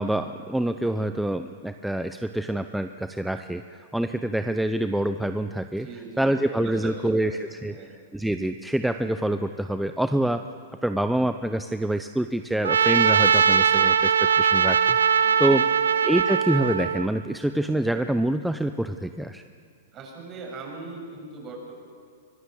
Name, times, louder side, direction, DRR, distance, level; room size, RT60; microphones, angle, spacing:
voice 1, 0.0-5.9 6.2-7.8 8.1-10.4 10.8-15.6 16.0-19.4, right 1 dB, 5° right, 9 dB, 0.6 m, -26 dB
voice 2, 5.7-7.9 15.2-15.8 19.9-21.7, right 3 dB, 35° right, 0 dB, 7.2 m, -41 dB
Trumpet, 12.6-17.1, right 7 dB, 90° right, 1.0 m, -20 dB
25.0 x 17.5 x 7.2 m, 2.3 s
hypercardioid pair, 120°, 0 cm